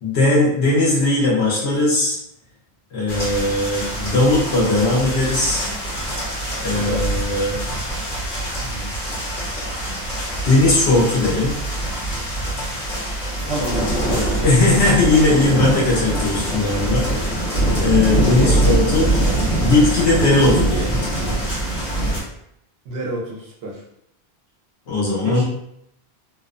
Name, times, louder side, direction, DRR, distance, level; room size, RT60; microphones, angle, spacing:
voice 1, 0.0-2.2 2.9-5.7 6.6-7.6 8.6-8.9 10.4-11.6 14.4-17.5 17.7-19.1 19.6-21.0 24.9-25.4, left 2 dB, 85° left, -6 dB, 1.1 m, -18 dB
sound 1, 3.1-22.2, right 1 dB, 55° left, 1.3 m, -23 dB
voice 2, 6.7-7.0 13.4-14.4 14.7-14.8 18.3-18.8 22.8-23.8 25.2-25.4, right 1 dB, 70° right, -2 dB, 0.9 m, -29 dB
2.7 x 2.0 x 2.4 m, 0.76 s
omnidirectional pair, 1.1 m